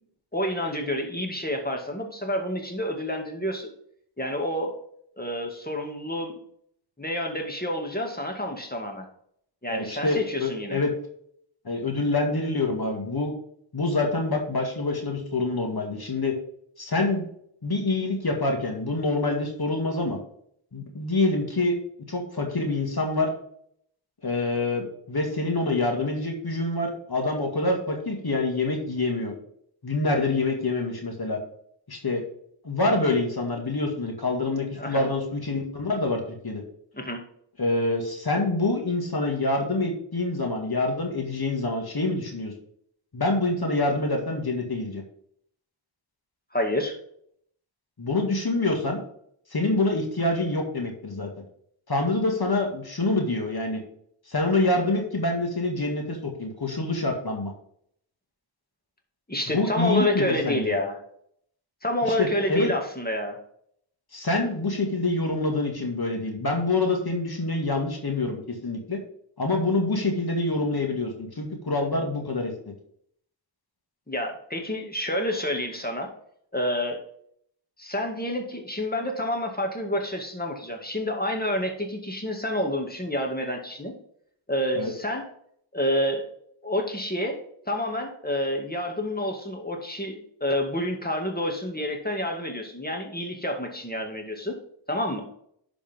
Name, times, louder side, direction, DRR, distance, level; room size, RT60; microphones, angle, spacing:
voice 1, 0.3-3.7 4.2-4.7 5.2-6.4 7.0-9.1 9.6-10.8 34.8-35.1 36.9-37.2 46.5-47.0 59.3-61.0 61.8-63.4 74.1-76.1 76.5-77.0 77.8-83.9 84.5-85.3 85.7-86.3 86.6-87.4 87.7-94.6 94.9-95.2, left 1 dB, 20° left, 2 dB, 2.1 m, -28 dB
voice 2, 9.7-10.9 11.6-13.3 13.7-16.3 16.8-17.3 17.6-20.2 20.7-21.8 22.1-23.3 24.2-29.4 29.8-31.4 31.9-32.2 32.6-36.6 37.6-42.5 43.1-45.0 48.0-49.0 49.5-51.3 51.9-53.8 54.3-57.5 59.5-60.7 62.2-62.7 64.1-69.0 69.4-72.5 84.8-84.9, left 2 dB, 50° left, 2 dB, 2.1 m, -26 dB
11.0 x 5.1 x 3.6 m, 0.68 s
cardioid pair, 45°, 47 cm